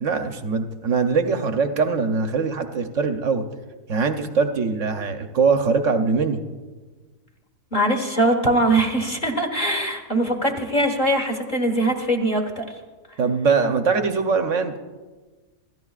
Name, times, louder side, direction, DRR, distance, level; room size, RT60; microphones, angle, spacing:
voice 1, 0.0-3.5 3.9-6.4 13.2-14.8, right 5 dB, 55° right, 7 dB, 1.0 m, -22 dB
voice 2, 7.7-12.6, right 1 dB, 30° left, 4 dB, 1.5 m, -22 dB
26.5 x 14.0 x 2.4 m, 1.3 s
omnidirectional pair, 1.7 m